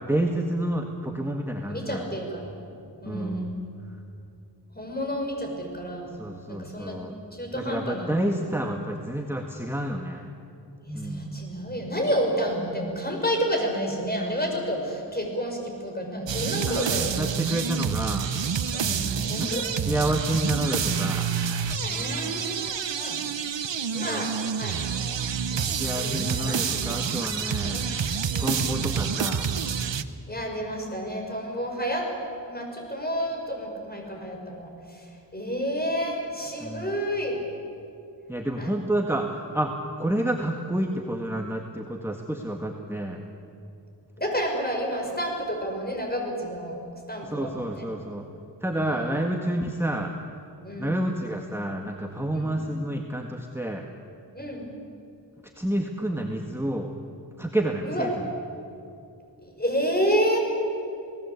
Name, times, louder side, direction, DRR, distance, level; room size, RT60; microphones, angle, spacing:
voice 1, 0.0-2.1 3.1-3.5 6.2-7.2 7.5-10.3 10.9-11.3 16.7-18.3 19.4-21.3 24.0-24.3 25.5-27.8 28.4-29.5 36.6-36.9 38.3-43.2 47.2-48.3 48.6-50.1 50.8-53.8 55.6-56.9 57.4-58.1, right 1 dB, 5° right, 2 dB, 1.8 m, -29 dB
voice 2, 1.7-2.5 3.0-3.5 4.7-6.2 6.5-7.0 7.3-8.1 10.8-17.3 18.7-19.7 21.8-23.2 23.9-24.3 24.6-24.9 25.9-27.2 27.7-27.9 28.3-28.6 30.3-32.1 32.5-35.0 35.3-37.4 38.6-38.7 44.2-46.8 47.1-47.9 48.8-49.2 50.6-50.9 52.3-52.6 54.3-54.7 57.8-58.1 59.4-60.4, equal, 20° left, 2 dB, 6.4 m, -30 dB
sound 1, 16.3-30.0, right 7 dB, 80° right, 1.0 m, -28 dB
28.5 x 18.5 x 8.4 m, 2.6 s
wide cardioid pair, 60°, 43 cm